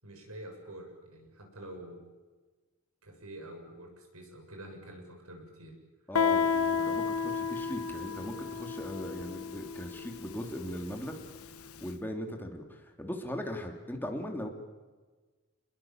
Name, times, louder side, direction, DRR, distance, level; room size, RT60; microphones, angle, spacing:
voice 1, 0.0-2.0 3.0-5.8 6.8-7.4, right 1 dB, 85° right, 3 dB, 7.0 m, -47 dB
Guitar, 6.1-11.6, left 6 dB, 80° left, 1.1 m, -32 dB
voice 2, 6.1-11.2 11.6-14.5, equal, 10° left, 3 dB, 3.0 m, -39 dB
29.0 x 21.5 x 7.3 m, 1.3 s
head